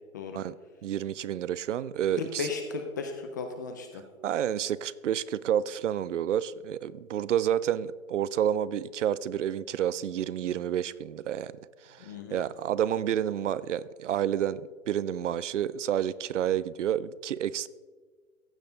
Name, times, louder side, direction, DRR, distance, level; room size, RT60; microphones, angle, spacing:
voice 1, 0.8-2.5 4.2-17.7, right 10 dB, 65° right, 0.5 m, -29 dB
voice 2, 2.2-4.0 12.0-12.4, left 5 dB, 15° left, 0.3 m, -35 dB
15.0 x 8.4 x 3.9 m
figure-of-eight pair, 115°, 41 cm